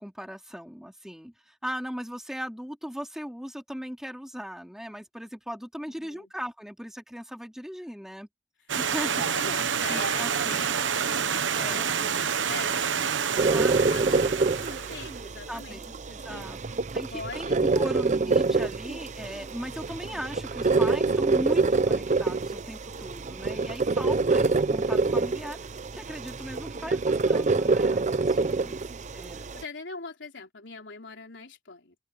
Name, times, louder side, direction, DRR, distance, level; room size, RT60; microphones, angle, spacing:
voice 1, 0.0-8.3 8.8-9.2 9.9-10.6 11.5-11.9 13.5-13.8 15.5-16.6 16.9-28.8 29.1-29.4, equal, 5° right, 3.3 m, -38 dB
voice 2, 5.9-6.3 9.0-11.2 11.6-16.4 17.1-18.1 23.5-23.9 29.1-32.0, left 4 dB, 75° left, 3.7 m, -43 dB
Stream, 8.7-15.2, right 7 dB, 85° right, 1.0 m, -28 dB
sound 1, 13.4-29.6, right 3 dB, 40° right, 0.6 m, -26 dB
open air
head